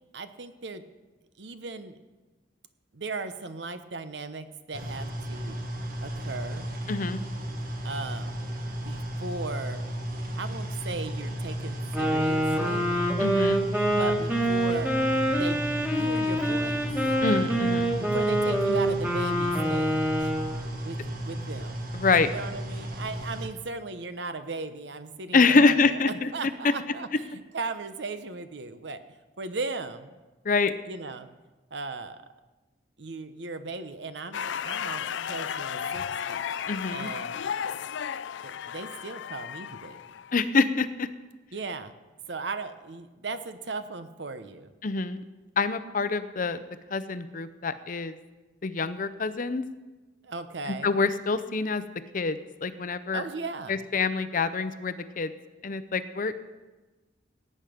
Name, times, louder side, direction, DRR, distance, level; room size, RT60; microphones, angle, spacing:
voice 1, 0.1-0.8 1.4-2.0 2.9-5.6 6.0-6.7 7.8-8.5 8.8-9.8 10.4-12.9 13.9-16.9 18.0-20.3 20.8-21.8 22.1-29.0 29.4-30.1 30.8-31.3 31.7-32.2 33.0-36.4 36.9-37.4 38.4-40.0 41.5-41.9 42.3-44.7 50.2-51.0 53.1-53.8, right 3 dB, 70° right, 10 dB, 0.9 m, -37 dB
sound 1, 4.7-23.5, equal, 50° right, 1.6 m, -34 dB
voice 2, 6.9-7.2 13.2-13.6 17.2-17.9 21.9-22.3 25.3-26.3 30.4-30.7 36.7-37.1 40.3-41.1 44.8-45.2 45.6-46.6 46.9-48.2 48.6-49.6 50.7-51.8 52.1-53.2 53.7-55.3 55.6-56.3, left 4 dB, 45° left, 12 dB, 0.6 m, -25 dB
Wind instrument woodwind instrument, 11.9-20.5, right 1 dB, 10° right, 1.7 m, -26 dB
sound 2, 34.3-40.5, left 8 dB, 85° left, 0.4 m, -34 dB
17.5 x 8.9 x 5.1 m, 1.2 s
head